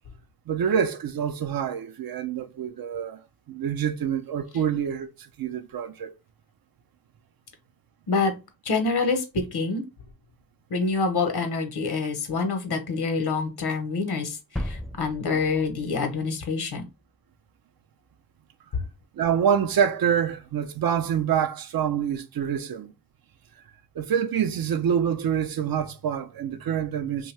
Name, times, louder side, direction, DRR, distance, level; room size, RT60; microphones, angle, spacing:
voice 1, 0.5-3.2 3.5-6.1 19.2-22.9 24.0-27.3, right 8 dB, 65° right, 0.5 m, -26 dB
voice 2, 8.6-9.8 10.7-16.8, left 4 dB, 80° left, 0.8 m, -26 dB
sound 1, 14.6-16.6, left 1 dB, ahead, 0.5 m, -35 dB
2.7 x 2.3 x 3.1 m
cardioid pair, 50°, 39 cm